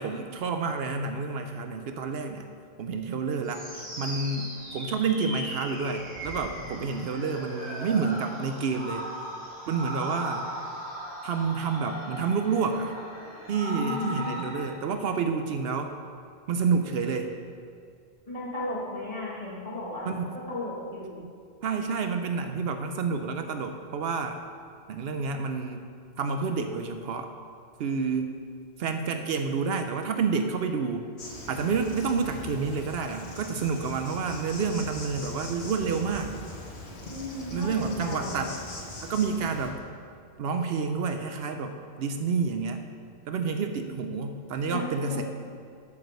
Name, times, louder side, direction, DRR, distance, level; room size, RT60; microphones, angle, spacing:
voice 1, 0.0-2.5 2.8-9.1 9.7-10.5 11.2-12.9 13.5-15.9 16.5-17.3 20.1-20.2 21.2-21.3 21.6-24.4 24.9-25.8 26.2-27.3 27.8-28.3 28.8-31.1 31.5-36.3 37.5-38.6 39.0-39.8 40.4-42.8 43.3-45.2, right 5 dB, 70° right, 6 dB, 0.8 m, -29 dB
sound 1, 3.4-14.7, equal, 10° right, 2.3 m, -38 dB
voice 2, 13.7-14.5 18.3-20.1 20.5-21.3 37.1-38.5 44.7-44.8 45.1-45.2, left 2 dB, 35° left, -7 dB, 2.2 m, -35 dB
Insect, 31.2-39.7, left 2 dB, 90° left, 1.5 m, -41 dB
8.2 x 4.9 x 6.6 m, 2.3 s
omnidirectional pair, 1.1 m